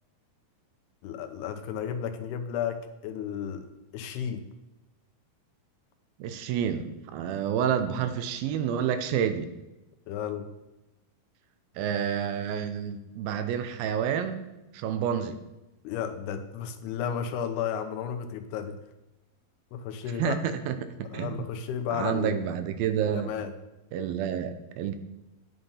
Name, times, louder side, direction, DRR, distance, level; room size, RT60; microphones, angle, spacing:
voice 1, 1.0-3.7 3.9-4.4 10.1-10.5 15.8-18.8 19.7-20.4 21.1-22.4 23.1-23.5, left 8 dB, 85° left, 8 dB, 3.0 m, -33 dB
voice 2, 6.2-9.5 11.8-14.4 14.7-15.4 20.2-21.4 21.9-23.3 23.9-25.0, right 8 dB, 75° right, 9 dB, 2.5 m, -29 dB
11.0 x 9.5 x 5.6 m, 0.98 s
omnidirectional pair, 4.5 m